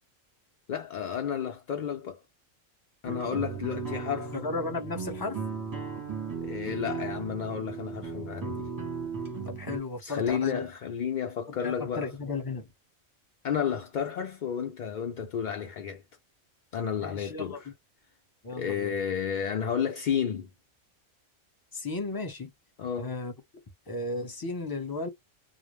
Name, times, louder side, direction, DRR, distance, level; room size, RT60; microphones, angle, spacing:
voice 1, 0.7-2.2 3.0-4.3 6.4-8.7 10.0-12.1 13.4-16.0 16.7-17.7 18.5-20.5 22.8-23.1, left 8 dB, 70° left, 0.4 m, -32 dB
sound 1, 3.0-9.8, right 5 dB, 20° right, 0.8 m, -36 dB
voice 2, 4.3-5.4 9.4-10.7 11.5-12.7 17.0-17.6 18.4-18.9 21.7-22.5 23.0-23.3 23.9-25.1, left 3 dB, 20° left, 0.7 m, -34 dB
2.2 x 2.0 x 3.0 m
omnidirectional pair, 1.3 m